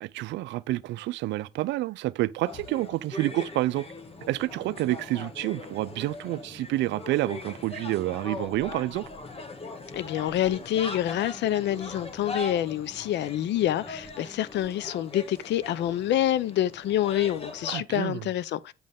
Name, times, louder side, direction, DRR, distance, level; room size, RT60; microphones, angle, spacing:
voice 1, 0.0-3.8 4.3-9.0 17.7-18.3, right 16 dB, 70° right, 0.4 m, -29 dB
sound 1, 2.5-17.8, left 2 dB, 30° left, 1.6 m, -41 dB
voice 2, 9.9-18.7, left 12 dB, 65° left, 0.6 m, -27 dB
8.7 x 5.3 x 3.6 m
supercardioid pair, 75°, 19 cm